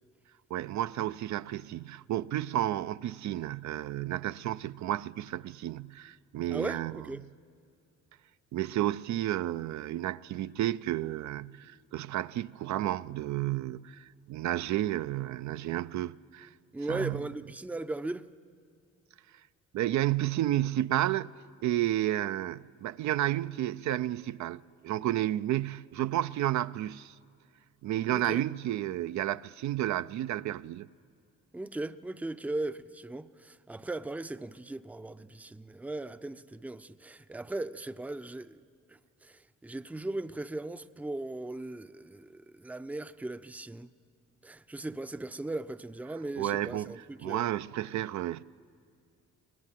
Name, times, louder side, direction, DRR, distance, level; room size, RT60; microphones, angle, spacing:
voice 1, 0.5-6.9 8.5-16.5 16.9-17.2 19.7-21.3 21.6-27.2 27.8-30.9 46.4-48.4, right 13 dB, 70° right, 0.5 m, -31 dB
voice 2, 6.5-7.2 16.7-18.3 28.1-28.4 31.5-38.6 38.9-43.9 44.4-47.5, right 2 dB, 5° right, 0.5 m, -38 dB
23.5 x 19.5 x 7.5 m
cardioid pair, 90°, 30 cm